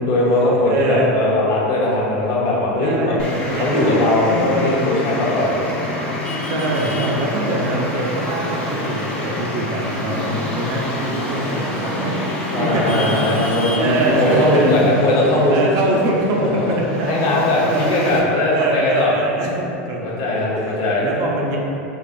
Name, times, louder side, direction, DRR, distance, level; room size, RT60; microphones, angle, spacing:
voice 1, 0.0-3.2 3.5-5.5 12.5-15.6 16.4-16.7 17.0-19.1 19.9-21.0, left 2 dB, 50° left, -5 dB, 1.0 m, -19 dB
voice 2, 0.7-1.1 2.8-4.8 6.5-12.2 12.5-14.7 15.5-17.3 17.6-18.0 18.5-21.6, right 2 dB, 45° right, -1 dB, 0.5 m, -24 dB
Traffic noise roadway noise, 3.2-18.2, left 1 dB, 10° left, 0.7 m, -27 dB
4.8 x 2.4 x 2.5 m, 2.9 s
supercardioid pair, 125°, 8 cm